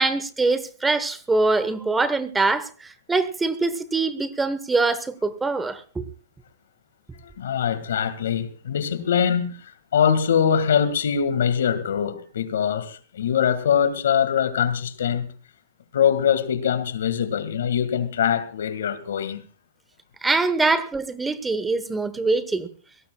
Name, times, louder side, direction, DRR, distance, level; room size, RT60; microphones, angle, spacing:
voice 1, 0.0-6.1 20.2-22.7, right 3 dB, 10° right, 1.0 m, -23 dB
voice 2, 7.2-15.3 15.9-19.5, left 8 dB, 85° left, 1.8 m, -23 dB
23.0 x 17.5 x 2.3 m
hypercardioid pair, 140°, 0 cm